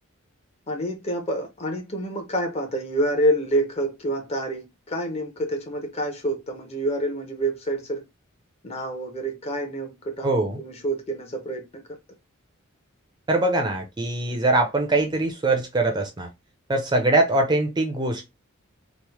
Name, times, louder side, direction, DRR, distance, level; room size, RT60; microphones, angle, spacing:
voice 1, 0.7-8.0 8.6-11.8, right 1 dB, 30° left, 0.7 m, -27 dB
voice 2, 10.2-10.6 13.3-16.3 16.7-18.3, right 2 dB, 20° right, 0.4 m, -22 dB
3.0 x 2.1 x 3.0 m
head